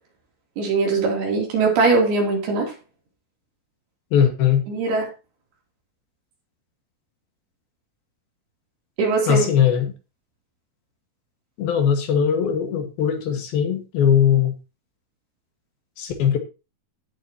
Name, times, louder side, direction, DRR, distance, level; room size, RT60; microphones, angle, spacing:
voice 1, 0.6-2.7 4.7-5.1 9.0-9.5, right 3 dB, 80° right, 0 dB, 5.2 m, -21 dB
voice 2, 4.1-4.6 9.3-9.9 11.6-14.5 16.0-16.4, left 8 dB, 70° left, 5 dB, 3.6 m, -20 dB
16.0 x 7.5 x 2.9 m, 0.29 s
omnidirectional pair, 4.5 m